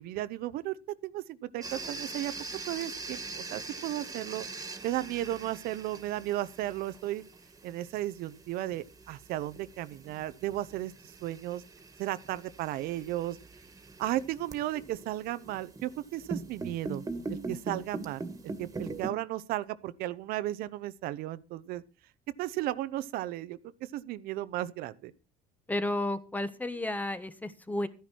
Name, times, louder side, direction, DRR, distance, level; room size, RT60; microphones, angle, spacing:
voice 1, 0.0-2.3 2.7-4.5 4.8-7.2 7.6-11.6 12.0-13.4 14.0-17.0 17.3-18.2 18.6-21.8 22.4-23.6 23.9-25.1, right 14 dB, 75° right, 0.9 m, -34 dB
sound 1, 1.6-19.1, right 3 dB, 20° right, 2.1 m, -42 dB
voice 2, 25.7-27.9, left 1 dB, 10° left, 1.3 m, -32 dB
14.0 x 10.5 x 4.6 m
cardioid pair, 115°, 15 cm